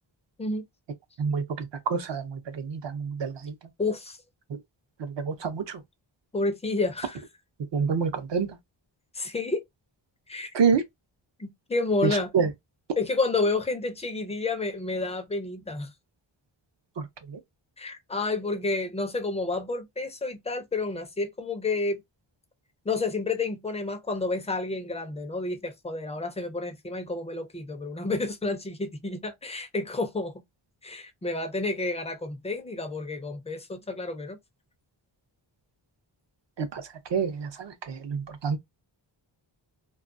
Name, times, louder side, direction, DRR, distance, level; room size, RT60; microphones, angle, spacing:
voice 1, 1.2-3.6 4.5-4.6 5.0-5.8 7.7-8.6 10.5-10.8 12.0-12.5 17.0-17.4 36.6-38.6, right 6 dB, 60° right, 0.6 m, -28 dB
voice 2, 3.8-4.2 6.3-7.2 9.1-9.6 10.3-10.5 11.4-12.3 13.0-15.9 17.8-22.0 22.9-30.4 30.8-34.4, left 3 dB, 15° left, 0.4 m, -30 dB
2.2 x 2.2 x 2.5 m
wide cardioid pair, 120°, 49 cm